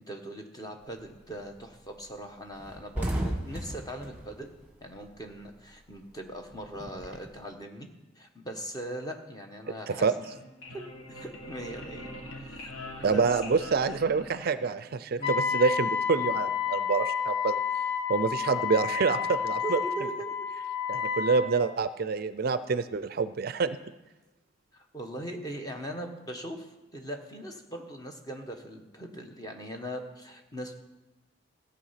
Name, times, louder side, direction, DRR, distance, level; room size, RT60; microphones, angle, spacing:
voice 1, 0.0-4.5 4.8-7.9 8.2-10.1 10.7-12.1 12.4-13.2 14.2-14.3 15.2-15.4 19.6-20.3 24.7-30.8, right 1 dB, 20° left, 3 dB, 1.1 m, -40 dB
sound 1, 0.8-1.2 1.6-1.7 2.0-2.1 2.4-5.4 5.7-7.4, right 1 dB, 10° right, 1.7 m, -35 dB
sound 2, 10.1-14.8, left 1 dB, 85° left, 1.5 m, -43 dB
voice 2, 13.0-17.6 18.1-19.8 20.9-23.8, right 4 dB, 50° right, 13 dB, 0.4 m, -27 dB
Wind instrument woodwind instrument, 15.2-21.5, left 7 dB, 45° left, 4.0 m, -30 dB
14.5 x 7.8 x 5.7 m, 1.1 s
head